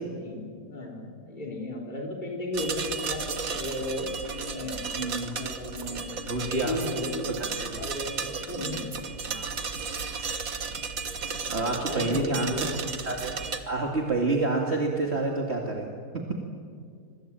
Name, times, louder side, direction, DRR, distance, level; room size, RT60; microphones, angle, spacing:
voice 1, 0.1-4.8 5.3-6.0 6.4-8.9 11.9-12.7, left 1 dB, 30° left, 0 dB, 3.9 m, -35 dB
sound 1, 2.5-13.6, right 5 dB, 60° right, 1.9 m, -34 dB
voice 2, 4.9-5.4 6.3-6.8 7.7-7.8 9.2-9.5 11.5-12.7 13.1-13.3 13.7-15.9, right 2 dB, 40° right, 0 dB, 2.5 m, -28 dB
25.0 x 24.0 x 8.9 m, 2.1 s
omnidirectional pair, 1.7 m